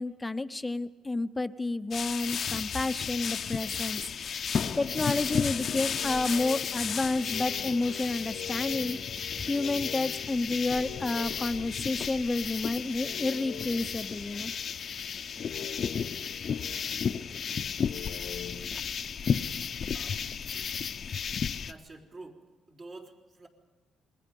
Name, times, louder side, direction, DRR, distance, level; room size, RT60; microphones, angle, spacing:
voice 1, 0.0-4.0 4.3-9.0 9.4-14.5, left 2 dB, 15° left, 11 dB, 0.7 m, -30 dB
sound 1, 1.9-21.7, left 7 dB, 55° left, 0.7 m, -33 dB
sound 2, 4.8-12.6 12.9-18.7, left 9 dB, 80° left, 0.9 m, -45 dB
sound 3, 7.6-20.0, right 2 dB, 65° right, 2.3 m, -57 dB
voice 2, 20.5-21.0 21.6-22.4 22.7-23.5, right 2 dB, 45° right, 0 dB, 4.1 m, -48 dB
27.5 x 21.0 x 5.4 m, 1.3 s
cardioid pair, 90°, 0 cm